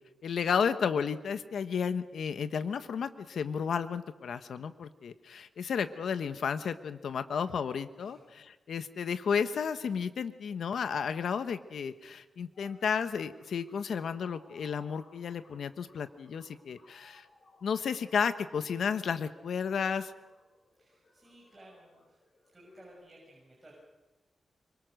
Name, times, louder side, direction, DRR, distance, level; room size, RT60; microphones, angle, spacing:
voice 1, 0.2-17.3 17.6-20.1, left 6 dB, 80° left, 10 dB, 1.1 m, -32 dB
voice 2, 8.0-8.4 20.8-22.2 22.5-23.7, right 1 dB, 15° right, -3 dB, 6.5 m, -57 dB
sound 1, 12.5-22.9, left 1 dB, 50° left, 5.9 m, -63 dB
25.5 x 23.5 x 6.5 m, 1.1 s
wide cardioid pair, 105°, 0 cm